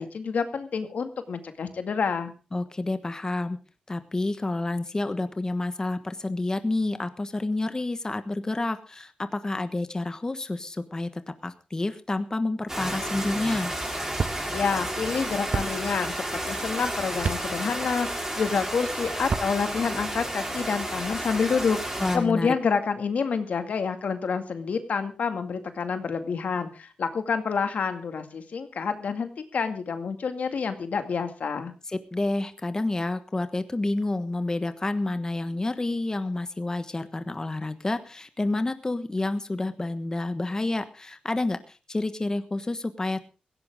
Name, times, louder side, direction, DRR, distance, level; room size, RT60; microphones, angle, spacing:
voice 1, 0.0-2.3 14.5-31.7, left 5 dB, 75° left, 8 dB, 2.1 m, -28 dB
voice 2, 2.5-3.6 3.9-13.7 22.0-22.6 31.9-43.3, left 2 dB, 25° left, 10 dB, 1.3 m, -29 dB
sound 1, 12.7-22.2, right 1 dB, 15° right, 6.2 m, -32 dB
sound 2, 14.2-14.4 15.5-15.7 17.2-17.4 19.2-19.5, right 5 dB, 60° right, 0.9 m, -27 dB
17.0 x 16.0 x 3.6 m, 0.34 s
wide cardioid pair, 90°, 3 cm